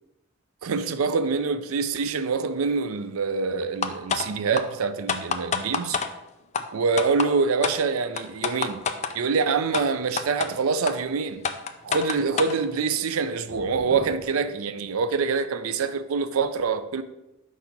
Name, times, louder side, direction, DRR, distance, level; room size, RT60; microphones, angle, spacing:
voice 1, 0.6-6.0 6.7-8.8 9.1-11.4 11.8-17.0, right 5 dB, 85° right, 0.5 m, -25 dB
sound 1, 3.8-4.3 4.6-4.7 5.1-6.1 6.5-6.6 7.0-7.3 7.6-7.8 8.2-9.1 9.7-9.8 10.2-10.5 10.9-11.0 11.4-12.6, left 6 dB, 30° left, 0.4 m, -26 dB
sound 2, 10.0-11.6 11.9-12.2 12.5-14.3, left 1 dB, ahead, 1.3 m, -46 dB
4.8 x 4.1 x 5.8 m
head